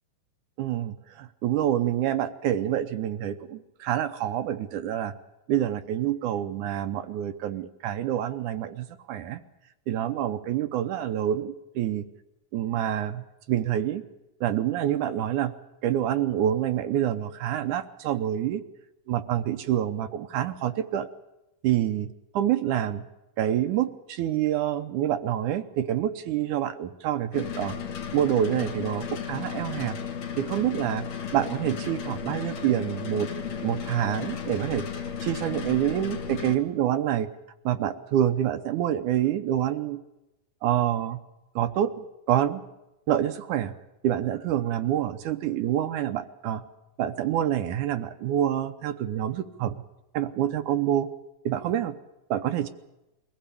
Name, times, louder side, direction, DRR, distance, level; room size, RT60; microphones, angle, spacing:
voice 1, 0.6-5.1 5.5-9.4 9.9-12.0 12.5-14.0 14.4-15.5 15.8-18.6 19.1-21.1 21.6-22.1 22.4-23.0 23.4-27.8 28.1-30.0 30.4-31.0 31.3-33.3 33.6-34.8 35.2-37.3 37.7-40.0 40.6-41.2 41.6-42.6 43.1-43.7 44.0-46.6 47.0-49.7 50.1-51.1 51.5-51.9 52.3-52.7, right 11 dB, 75° right, 9 dB, 2.2 m, -27 dB
sound 1, 27.3-36.6, left 7 dB, 55° left, 2.7 m, -34 dB
22.5 x 16.0 x 8.5 m, 0.95 s
omnidirectional pair, 3.9 m